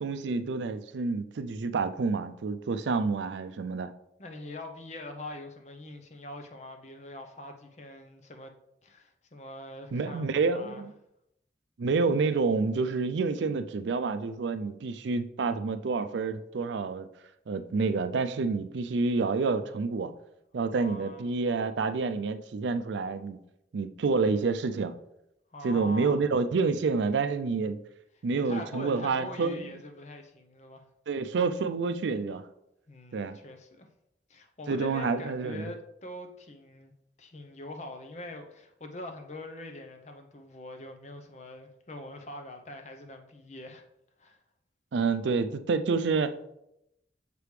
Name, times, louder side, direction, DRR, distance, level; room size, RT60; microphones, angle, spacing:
voice 1, 0.0-3.9 9.9-10.9 11.8-17.1 17.5-20.1 20.5-23.4 23.7-24.9 25.6-27.8 28.2-29.7 31.1-32.5 33.1-33.4 34.7-35.7 44.9-46.6, right 4 dB, 80° right, 10 dB, 0.4 m, -28 dB
voice 2, 4.2-8.5 8.8-10.8 20.7-21.3 25.5-26.2 28.3-30.9 32.9-33.9 34.3-36.9 37.2-43.8 44.2-44.4, left 1 dB, 40° left, 5 dB, 0.7 m, -43 dB
6.8 x 4.9 x 3.2 m, 0.82 s
head